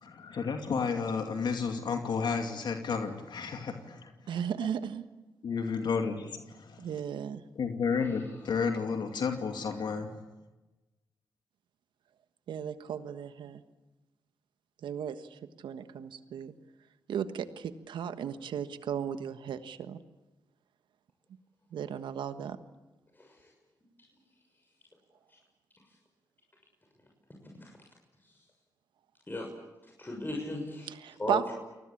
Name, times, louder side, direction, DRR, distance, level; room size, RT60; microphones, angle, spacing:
voice 1, 0.0-4.1 5.4-6.8 7.6-10.2, left 5 dB, 70° left, 5 dB, 2.6 m, -32 dB
voice 2, 4.3-5.0 6.8-7.4 12.5-13.6 14.8-16.5 17.1-20.0 21.7-22.6 30.9-31.5, right 8 dB, 80° right, 11 dB, 1.5 m, -35 dB
voice 3, 23.2-23.5 27.6-27.7 29.3-29.5 30.0-30.9 31.2-31.4, left 2 dB, 25° left, 1 dB, 6.5 m, -36 dB
29.0 x 19.5 x 8.7 m, 1.1 s
supercardioid pair, 55°, 8 cm